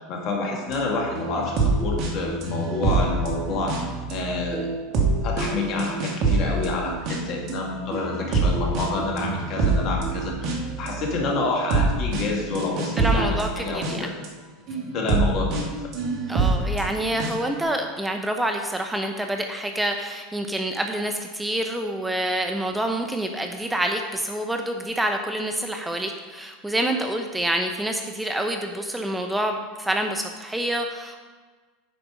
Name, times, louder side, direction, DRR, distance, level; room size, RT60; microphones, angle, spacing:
voice 1, 0.1-4.7 5.0-14.1 14.9-15.7, left 3 dB, 50° left, 0 dB, 2.2 m, -28 dB
sound 1, 0.7-14.3 14.7-17.6, right 3 dB, 50° right, 1.8 m, -26 dB
voice 2, 13.0-14.1 16.3-31.2, right 1 dB, 5° right, 4 dB, 0.7 m, -27 dB
9.4 x 5.2 x 5.1 m, 1.4 s
hypercardioid pair, 90°, 0 cm